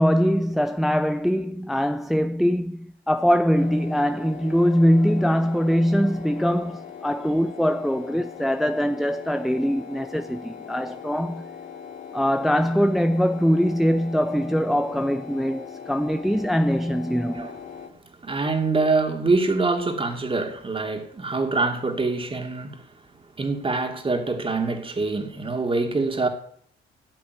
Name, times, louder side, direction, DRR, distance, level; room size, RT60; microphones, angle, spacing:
voice 1, 0.0-11.5 12.1-17.5, equal, ahead, 0.5 m, -22 dB
sound 1, 3.6-17.9, left 7 dB, 80° left, 2.4 m, -40 dB
voice 2, 18.2-22.9 23.4-26.3, right 3 dB, 25° right, 2.6 m, -25 dB
14.0 x 7.4 x 9.4 m
cardioid pair, 90°, 20 cm